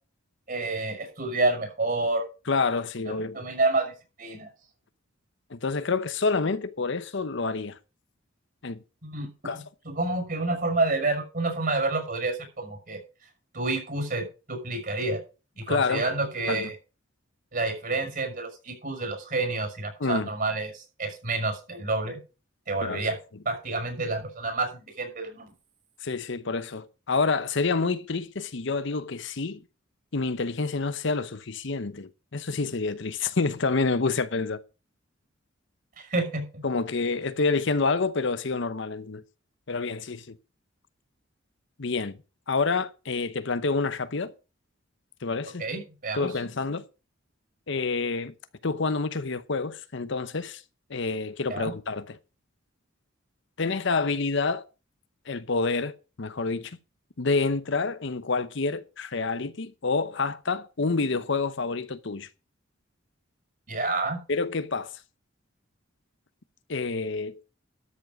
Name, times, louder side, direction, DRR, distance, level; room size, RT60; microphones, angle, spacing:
voice 1, 0.5-2.2 3.3-3.9 4.2-4.5 9.0-9.3 9.8-13.0 13.5-15.2 15.6-16.7 17.5-22.2 22.7-23.2 23.4-25.5 36.0-36.5 45.6-46.3 51.5-51.7 63.7-64.2, right 2 dB, 50° right, 6.1 m, -29 dB
voice 2, 2.5-3.4 5.5-7.8 8.6-8.8 9.4-9.6 15.7-16.1 16.5-16.7 20.0-20.3 22.8-23.0 26.0-29.6 30.1-34.6 36.6-39.2 39.7-40.4 41.8-42.2 42.5-44.3 45.2-45.6 46.1-46.9 47.7-48.3 48.6-50.6 50.9-52.2 53.6-54.6 55.3-56.8 57.2-62.3 64.3-65.0 66.7-67.4, left 4 dB, 65° left, 0.8 m, -28 dB
13.0 x 7.4 x 5.3 m
head